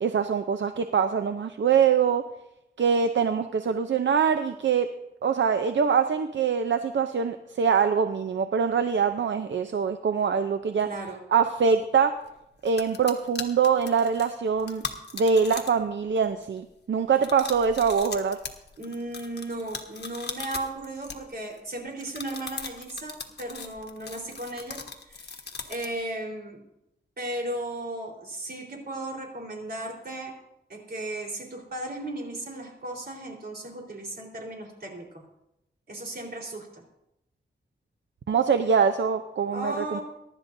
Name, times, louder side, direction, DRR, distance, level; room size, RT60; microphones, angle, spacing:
voice 1, 0.0-2.2 2.8-4.9 5.2-10.9 11.3-12.1 12.6-14.8 15.1-18.4 38.3-40.0, right 6 dB, 80° right, 8 dB, 0.6 m, -24 dB
voice 2, 10.8-11.2 18.8-24.8 25.1-25.4 25.7-26.6 27.2-30.3 30.7-35.2 35.9-36.8 39.5-40.0, right 1 dB, 55° right, 0 dB, 4.0 m, -35 dB
sound 1, 12.3-12.4 12.6-15.9 16.2-16.6 17.1-21.6 22.0-26.0, left 4 dB, 60° left, 1.4 m, -39 dB
23.0 x 11.5 x 2.7 m, 0.84 s
wide cardioid pair, 80°, 19 cm